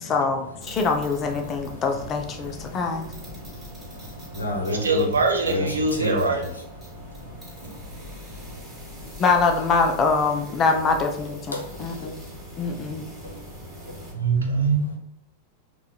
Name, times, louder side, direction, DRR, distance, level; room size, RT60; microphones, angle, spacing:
voice 1, 0.0-3.1 9.2-12.1 12.6-13.1, left 4 dB, 30° left, 0.5 m, -24 dB
sound 1, 0.6-14.1, left 1 dB, 15° right, 1.3 m, -43 dB
voice 2, 2.4-3.3 3.9-5.1 5.4-6.5 6.8-6.9 7.5-7.7 8.0-9.1 11.5-12.2 12.6-12.8 13.2-13.5 13.8-14.1 14.4-14.7, left 1 dB, 75° left, 0.6 m, -33 dB
voice 3, 4.7-6.4 14.1-15.0, right 3 dB, 75° right, 0.5 m, -23 dB
3.8 x 2.4 x 2.2 m
figure-of-eight pair, 90°, 0 cm